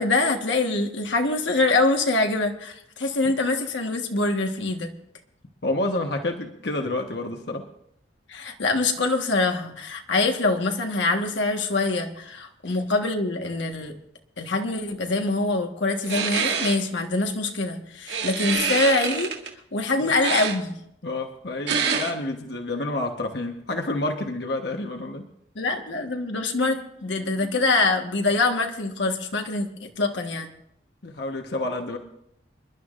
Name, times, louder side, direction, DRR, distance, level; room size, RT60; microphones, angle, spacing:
voice 1, 0.0-4.9 8.3-14.0 14.4-19.3 19.7-20.8 25.5-30.5, left 3 dB, 85° left, 3 dB, 1.4 m, -24 dB
voice 2, 5.6-7.6 12.6-12.7 20.0-20.1 21.0-25.2 31.0-32.0, left 2 dB, 65° left, 3 dB, 1.1 m, -29 dB
sound 1, 16.1-16.7 18.1-19.5 20.2-20.6 21.7-22.1, right 6 dB, 75° right, 1.8 m, -26 dB
27.5 x 11.5 x 2.5 m, 0.74 s
head